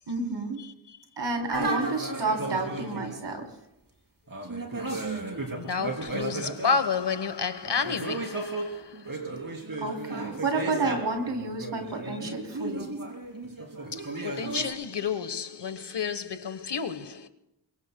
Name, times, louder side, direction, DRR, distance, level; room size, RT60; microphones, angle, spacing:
voice 1, 0.1-0.6 1.2-3.5 9.8-12.9, right 3 dB, 75° right, 3.4 m, -30 dB
voice 2, 0.6-1.0 5.5-9.2 13.9-17.3, left 5 dB, 70° left, 1.2 m, -31 dB
sound 1, 1.5-3.3 4.3-6.9 7.6-14.7, right 2 dB, 50° right, 3.3 m, -34 dB
23.5 x 23.0 x 2.2 m
wide cardioid pair, 50°, 43 cm